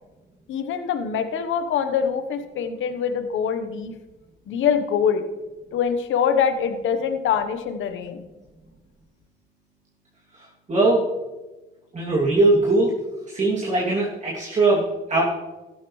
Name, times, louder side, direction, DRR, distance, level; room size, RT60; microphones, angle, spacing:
voice 1, 0.5-4.0 4.5-5.2 5.7-8.2, left 7 dB, 80° left, 9 dB, 1.1 m, -24 dB
voice 2, 10.7-11.0 11.9-12.9 13.3-15.2, right 2 dB, 35° right, -6 dB, 2.7 m, -20 dB
14.5 x 11.5 x 3.2 m, 1.1 s
cardioid pair, 90°, 20 cm